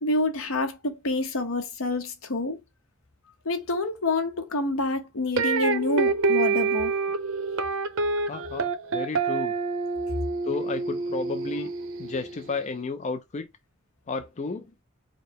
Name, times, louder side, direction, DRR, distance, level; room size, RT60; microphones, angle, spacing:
voice 1, 0.0-2.6 3.4-6.9, left 2 dB, 75° left, 1.0 m, -27 dB
sound 1, 5.4-12.5, right 4 dB, 65° right, 0.8 m, -27 dB
voice 2, 8.3-9.5 10.4-11.7 12.0-13.5 14.1-14.7, left 4 dB, 35° left, 0.4 m, -32 dB
4.9 x 2.1 x 4.6 m
head